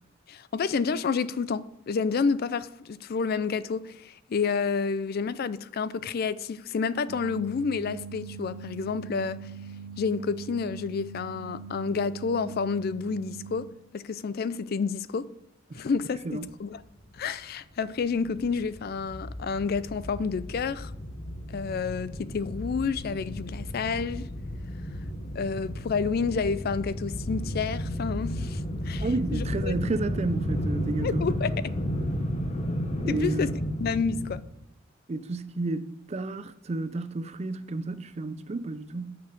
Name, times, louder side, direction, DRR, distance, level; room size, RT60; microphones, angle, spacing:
voice 1, 0.3-9.5 10.0-13.7 13.9-15.3 15.7-16.8 17.2-20.9 21.5-24.2 25.3-29.1 29.3-29.7 31.0-31.5 33.1-33.5 33.8-34.4, left 5 dB, 50° left, 0.4 m, -29 dB
sound 1, 7.1-13.7, right 5 dB, 80° right, 0.7 m, -42 dB
sound 2, 17.0-17.1 17.4-17.5 17.8-34.4, equal, 35° left, 1.0 m, -33 dB
voice 2, 29.0-31.3 33.0-33.5 35.1-39.2, right 3 dB, 35° right, 0.4 m, -32 dB
6.9 x 6.6 x 5.2 m
head